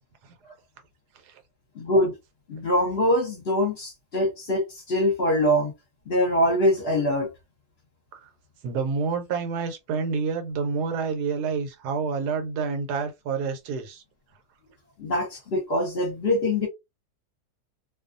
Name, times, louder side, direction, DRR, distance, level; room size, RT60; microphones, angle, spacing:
voice 1, 1.8-2.1 2.5-5.7 6.1-7.3 15.0-16.7, left 1 dB, 45° left, 0.9 m, -23 dB
voice 2, 8.6-14.0, right 5 dB, 85° right, 1.2 m, -28 dB
2.6 x 2.3 x 2.5 m
omnidirectional pair, 1.7 m